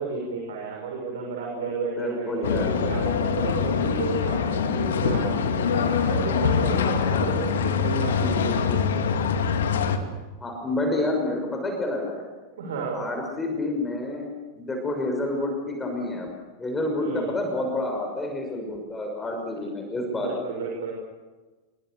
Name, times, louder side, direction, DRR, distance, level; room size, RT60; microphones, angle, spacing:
voice 1, 0.0-9.1 12.5-13.0 17.0-17.3 19.6-19.7 20.1-20.9, right 4 dB, 60° right, 0 dB, 6.6 m, -32 dB
voice 2, 2.0-2.7 8.2-8.3 10.4-12.3 12.9-14.3 14.6-16.3 16.6-20.3, left 2 dB, 15° left, 2 dB, 6.2 m, -29 dB
sound 1, 2.4-10.0, left 6 dB, 60° left, 2.3 m, -24 dB
28.0 x 24.0 x 7.0 m, 1.3 s
figure-of-eight pair, 90°, 0 cm